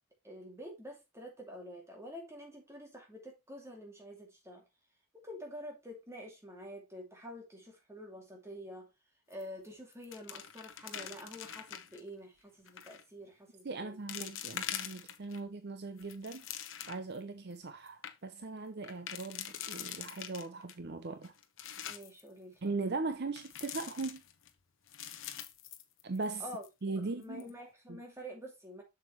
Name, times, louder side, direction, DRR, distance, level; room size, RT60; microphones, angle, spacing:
voice 1, 0.2-4.6 5.1-8.9 9.3-14.0 21.8-22.6 26.4-26.7 27.0-28.8, equal, 15° right, 2.5 m, -48 dB
sound 1, 9.3-9.7 9.9-12.0 12.7-13.0 13.6-13.7 14.1-15.4 15.9-17.2 17.6-17.7 17.9-18.1 18.8-20.7 21.2-22.2 23.4-24.5 24.9-26.4 26.6-26.7 27.2-27.5, left 10 dB, 60° left, 1.0 m, -43 dB
voice 2, 13.6-21.3 22.6-24.2 26.0-26.5 26.8-27.5 27.9-28.0, right 3 dB, 50° right, 0.6 m, -39 dB
7.3 x 6.7 x 3.1 m
head